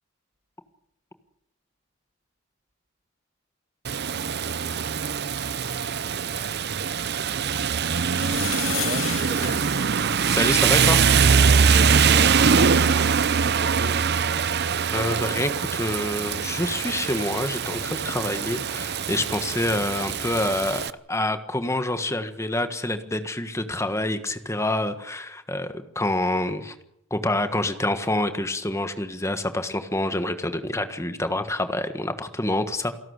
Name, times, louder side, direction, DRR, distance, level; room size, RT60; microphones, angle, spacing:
Rain, 3.8-20.9, right 6 dB, 50° right, 0.7 m, -23 dB
sound 1, 8.1-10.7 12.4-12.5 12.6-13.0, left 10 dB, 70° left, 2.5 m, -34 dB
voice 1, 8.8-9.7 11.7-12.8 13.3-14.0, right 2 dB, 35° right, 1.1 m, -35 dB
voice 2, 10.3-11.0 14.9-26.7 27.1-32.9, left 1 dB, 15° left, 1.5 m, -27 dB
28.0 x 12.0 x 8.2 m
head